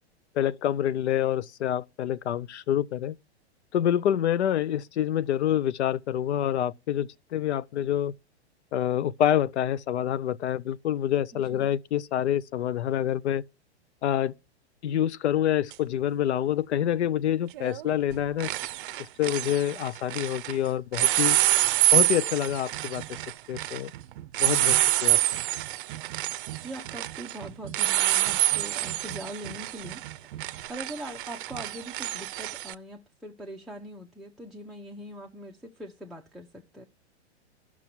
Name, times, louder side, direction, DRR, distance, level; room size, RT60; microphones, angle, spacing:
voice 1, 0.4-3.2 3.7-8.1 8.7-13.4 14.0-14.3 14.8-18.5 19.0-21.4 21.9-23.0 23.5-23.9 24.4-25.2, left 11 dB, 75° left, 0.5 m, -27 dB
voice 2, 11.3-11.7 26.6-36.8, right 1 dB, ahead, 0.5 m, -42 dB
sound 1, 15.7-15.8 17.5-17.8 18.1-20.5 20.9-32.7, right 15 dB, 50° right, 0.5 m, -27 dB
17.0 x 6.0 x 2.7 m
hypercardioid pair, 115°, 34 cm